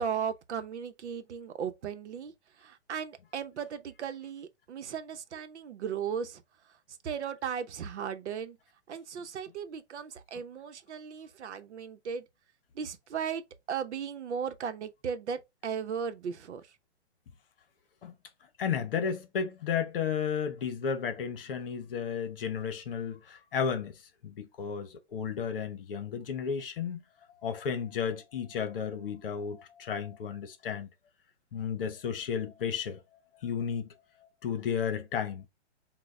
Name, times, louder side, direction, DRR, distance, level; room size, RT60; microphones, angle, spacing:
voice 1, 0.0-6.8 7.0-8.6 8.9-12.3 12.7-16.8, right 7 dB, 80° right, 0.9 m, -36 dB
voice 2, 18.6-23.9 24.2-27.0 27.4-30.9 31.5-33.0 33.4-33.9 34.4-35.5, left 7 dB, 55° left, 1.0 m, -33 dB
6.2 x 2.3 x 3.3 m
hypercardioid pair, 170°, 34 cm